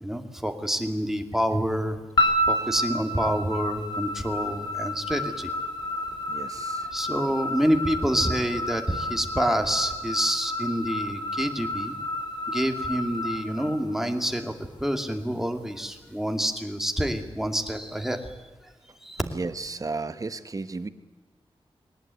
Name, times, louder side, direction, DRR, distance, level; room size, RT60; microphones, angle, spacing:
voice 1, 0.0-2.0 2.5-5.5 6.9-11.9 12.5-14.5 14.8-18.3 18.6-18.7 19.0-19.2, equal, 5° right, 4 dB, 2.3 m, -27 dB
sound 1, 2.2-14.5, left 1 dB, 50° left, 4.0 m, -30 dB
voice 2, 6.3-6.9 19.2-20.9, right 3 dB, 40° right, 12 dB, 1.2 m, -34 dB
21.0 x 19.5 x 9.4 m, 1.2 s
wide cardioid pair, 125°, 10 cm